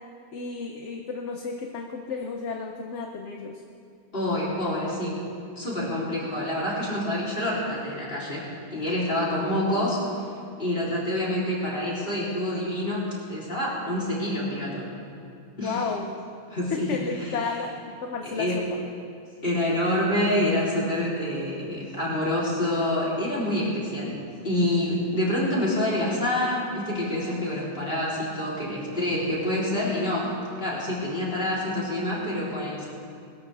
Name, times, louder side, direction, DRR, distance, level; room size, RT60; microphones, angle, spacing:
voice 1, 0.3-3.6 15.6-16.1 16.7-18.7, left 5 dB, 55° left, 3 dB, 1.1 m, -32 dB
voice 2, 4.1-5.2 5.6-10.0 10.6-14.9 15.6-15.8 16.5-17.3 18.2-18.6 19.4-24.2 24.4-30.3 30.6-32.9, left 1 dB, 35° left, -6 dB, 3.9 m, -27 dB
21.0 x 13.5 x 3.5 m, 2.4 s
omnidirectional pair, 1.6 m